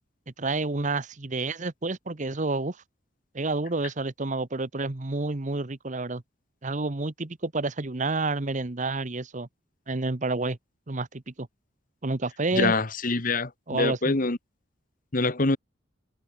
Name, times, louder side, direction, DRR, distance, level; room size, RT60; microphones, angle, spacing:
voice 1, 0.4-2.8 3.3-6.2 6.6-9.5 9.9-10.6 10.9-11.5 12.0-12.7 13.7-14.2, right 3 dB, 40° right, 1.1 m, -29 dB
voice 2, 12.6-14.4 15.1-15.6, left 3 dB, 45° left, 1.4 m, -25 dB
head